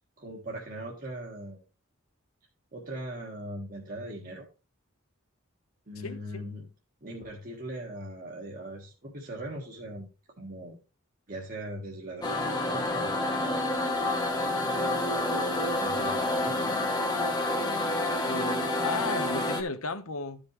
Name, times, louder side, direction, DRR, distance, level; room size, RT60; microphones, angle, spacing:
voice 1, 0.2-1.6 2.7-4.5 5.9-6.7 7.0-10.1 10.4-10.8 11.3-13.2 14.9-16.7 19.4-19.5, right 1 dB, 40° right, 1.6 m, -40 dB
voice 2, 6.0-6.4 18.2-20.4, left 4 dB, 75° left, 1.0 m, -35 dB
sound 1, 12.2-19.6, left 1 dB, 20° left, 1.2 m, -28 dB
13.5 x 5.3 x 3.2 m
head